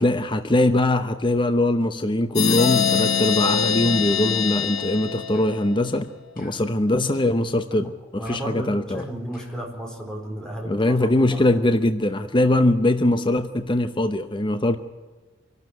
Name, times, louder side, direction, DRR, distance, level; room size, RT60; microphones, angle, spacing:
voice 1, 0.0-6.1 6.4-9.0 10.7-14.8, left 1 dB, 25° left, 9 dB, 0.8 m, -21 dB
sound 1, 2.4-5.9, left 7 dB, 90° left, 1.3 m, -23 dB
sound 2, 4.0-4.2 4.8-4.9 5.3-5.5 5.9-6.1 6.4-7.3 7.7-7.8 8.2-9.6, left 2 dB, 45° left, 5.0 m, -49 dB
voice 2, 8.1-11.7, right 1 dB, 5° left, 1 dB, 4.3 m, -34 dB
25.5 x 12.0 x 9.6 m, 1.3 s
head